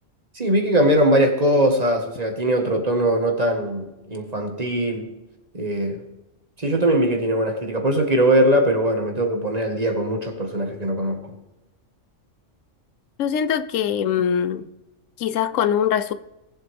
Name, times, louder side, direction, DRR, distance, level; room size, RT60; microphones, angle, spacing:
voice 1, 0.3-5.1 5.5-6.0 6.6-11.2, right 1 dB, 30° right, 1.6 m, -21 dB
voice 2, 13.2-14.7 15.2-16.1, left 8 dB, 85° left, 1.0 m, -22 dB
19.0 x 7.7 x 3.5 m
omnidirectional pair, 1.3 m